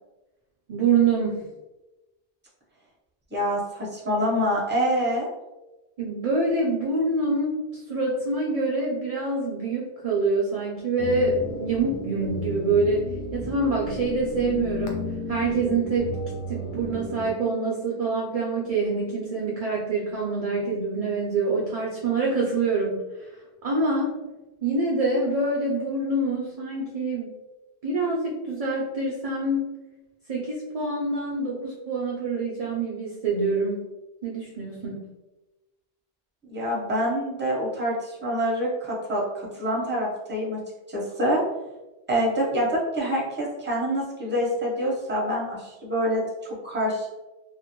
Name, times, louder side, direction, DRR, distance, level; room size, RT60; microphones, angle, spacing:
voice 1, 0.7-1.5 6.0-16.1 16.5-24.2 24.6-27.3 27.8-29.7 30.3-33.9 34.2-35.1, right 3 dB, 50° right, -3 dB, 0.4 m, -26 dB
voice 2, 3.3-5.3 36.5-40.6 40.9-41.4 42.1-47.1, equal, 10° right, -4 dB, 0.6 m, -26 dB
sound 1, 11.0-17.3, left 1 dB, 60° left, 0.7 m, -33 dB
2.7 x 2.5 x 2.9 m, 1.0 s
omnidirectional pair, 1.1 m